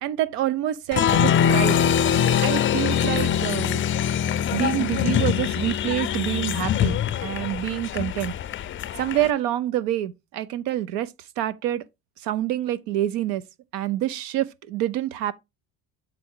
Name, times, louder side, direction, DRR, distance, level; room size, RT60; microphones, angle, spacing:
voice 1, 0.0-1.8 2.4-3.8 4.5-8.3 9.0-11.8 12.2-13.4 13.7-15.3, right 13 dB, 85° right, 0.8 m, -27 dB
Applause, 0.9-9.3, left 9 dB, 30° left, 0.4 m, -23 dB
7.5 x 4.7 x 3.8 m
cardioid pair, 120°, 40 cm